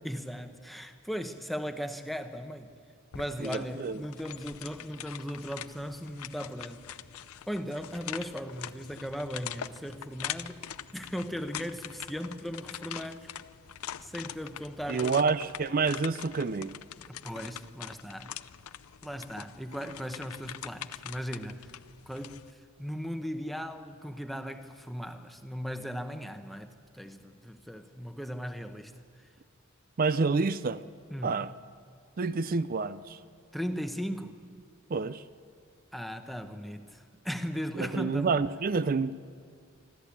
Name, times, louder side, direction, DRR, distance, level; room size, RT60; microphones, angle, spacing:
voice 1, 0.0-2.7 3.1-6.9 7.5-10.6 10.9-13.3 14.0-15.4 17.1-18.3 19.0-21.7 22.1-28.9 29.2-29.3 31.1-31.4 33.5-34.4 35.9-38.4, equal, ahead, 7 dB, 0.9 m, -37 dB
sound 1, 3.1-22.5, left 10 dB, 85° left, 0.5 m, -43 dB
voice 2, 3.4-4.0 14.9-16.8 30.0-30.8 31.2-31.5 32.2-33.2 34.9-35.2 37.8-39.1, right 4 dB, 40° right, 14 dB, 0.4 m, -28 dB
25.0 x 13.5 x 8.4 m, 2.2 s
head